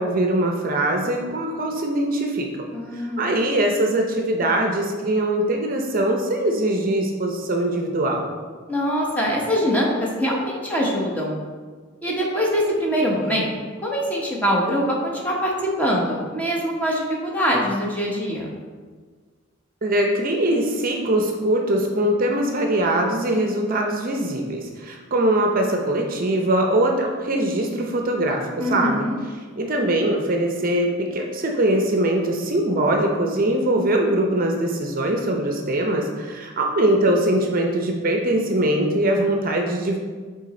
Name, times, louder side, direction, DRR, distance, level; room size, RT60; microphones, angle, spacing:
voice 1, 0.0-2.5 2.9-8.3 19.8-29.0 29.6-40.0, right 1 dB, 45° right, 2 dB, 0.6 m, -22 dB
voice 2, 2.7-3.3 8.7-11.4 12.0-13.5 13.8-15.5 15.8-18.5 28.6-29.2, equal, 10° left, -3 dB, 1.1 m, -23 dB
6.5 x 3.9 x 4.2 m, 1.5 s
head